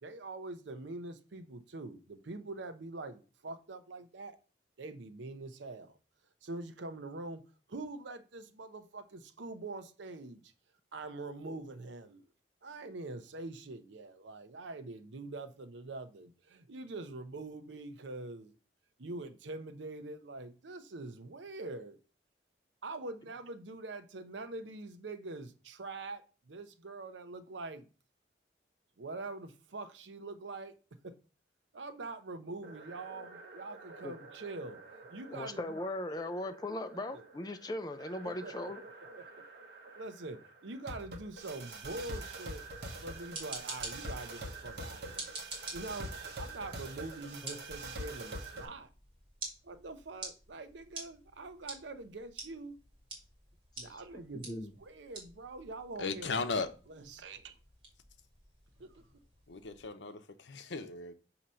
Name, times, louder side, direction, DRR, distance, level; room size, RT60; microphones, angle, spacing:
voice 1, 0.0-4.4 4.8-6.0 6.4-7.4 7.7-10.4 10.9-12.2 12.6-18.5 19.0-22.0 22.8-26.2 26.5-27.9 29.0-30.7 31.0-31.1 31.7-34.8 35.1-35.6 37.1-37.2 38.2-38.9 39.2-39.3 40.0-42.6 43.0-45.3 45.7-46.1 46.4-48.9 49.6-52.8 53.8-56.5 56.9-57.5 58.8-58.9, right 2 dB, 90° right, 0.7 m, -44 dB
sound 1, 32.6-48.6, right 2 dB, 65° right, 1.1 m, -46 dB
voice 2, 35.3-38.8 47.4-47.6 53.8-54.7, left 1 dB, 20° left, 0.4 m, -39 dB
sound 2, 43.1-59.9, right 3 dB, 30° right, 2.1 m, -49 dB
voice 3, 56.0-56.7 59.5-61.1, left 4 dB, 80° left, 0.7 m, -36 dB
6.3 x 2.9 x 5.5 m
head